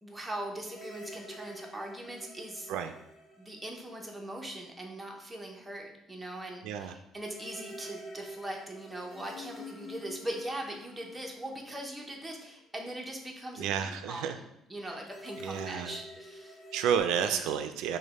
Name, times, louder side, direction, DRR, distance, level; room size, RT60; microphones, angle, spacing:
voice 1, 0.0-2.7 3.4-14.3 14.7-16.6 17.3-17.4, right 1 dB, 5° right, 0 dB, 0.7 m, -40 dB
sound 1, 0.6-4.4 4.7-4.8 7.2-12.7 15.0-17.0, left 1 dB, 40° left, 1.6 m, -48 dB
voice 2, 6.6-6.9 13.6-14.4 15.4-16.0 16.7-18.0, right 8 dB, 90° right, 8 dB, 0.3 m, -31 dB
5.1 x 2.1 x 4.0 m, 0.80 s
cardioid pair, 140°, 0 cm